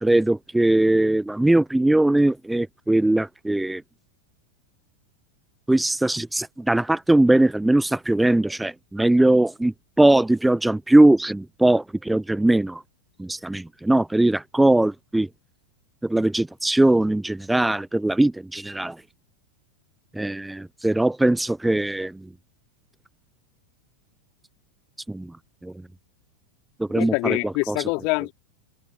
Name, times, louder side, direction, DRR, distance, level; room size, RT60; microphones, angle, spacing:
voice 1, 0.0-3.8 5.7-12.8 13.2-15.3 16.0-19.0 20.1-22.3 25.1-25.3 25.6-25.7 26.8-27.8, right 1 dB, 5° right, 0.8 m, -20 dB
voice 2, 26.9-28.3, left 31 dB, 45° left, 3.4 m, -25 dB
figure-of-eight pair, 90°, 0 cm